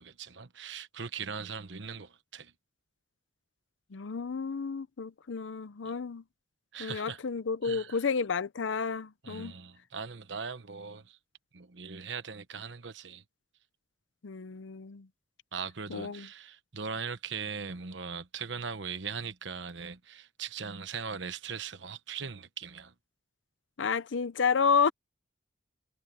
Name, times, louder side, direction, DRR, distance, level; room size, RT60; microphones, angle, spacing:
voice 1, 0.0-2.5 6.7-7.2 7.6-8.0 9.2-11.2 11.5-13.2 15.5-22.9, right 6 dB, 65° right, 1.1 m, -40 dB
voice 2, 3.9-6.2 6.8-9.5 14.2-15.1 15.9-16.3 23.8-24.9, left 5 dB, 75° left, 0.6 m, -30 dB
head